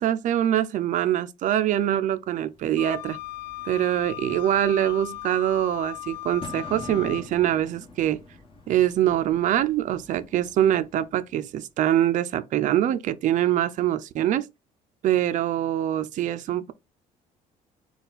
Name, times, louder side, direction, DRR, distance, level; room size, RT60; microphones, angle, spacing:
voice 1, 0.0-3.2 3.7-8.2 8.7-14.5 15.0-16.7, right 11 dB, 50° right, 0.4 m, -24 dB
Bird / Fireworks, 2.4-11.6, left 2 dB, 35° left, 1.4 m, -47 dB
Wind instrument woodwind instrument, 2.8-7.3, left 16 dB, 85° left, 0.5 m, -37 dB
4.2 x 2.3 x 4.0 m
cardioid pair, 120°, 17 cm